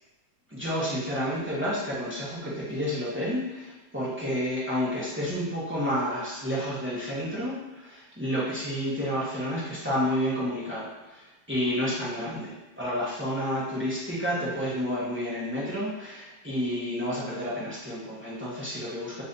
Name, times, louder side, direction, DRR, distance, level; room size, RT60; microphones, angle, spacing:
voice 1, 0.5-19.2, equal, 15° right, -8 dB, 0.5 m, -30 dB
3.9 x 2.6 x 3.9 m, 1.1 s
omnidirectional pair, 2.0 m